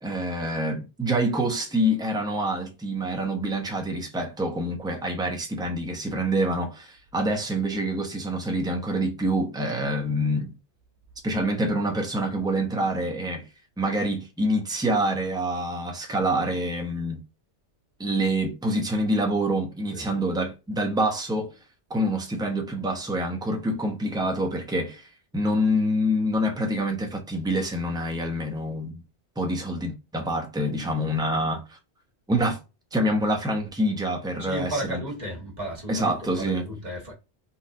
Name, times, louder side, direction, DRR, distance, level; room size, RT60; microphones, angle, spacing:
voice 1, 0.0-10.5 11.2-13.5 13.8-17.2 18.0-21.5 21.9-29.0 29.4-31.8 32.3-32.6 32.9-35.0 35.9-36.7, right 1 dB, 5° right, 0.7 m, -26 dB
voice 2, 34.4-37.1, right 1 dB, 40° right, 1.7 m, -34 dB
4.0 x 2.5 x 2.7 m
omnidirectional pair, 1.2 m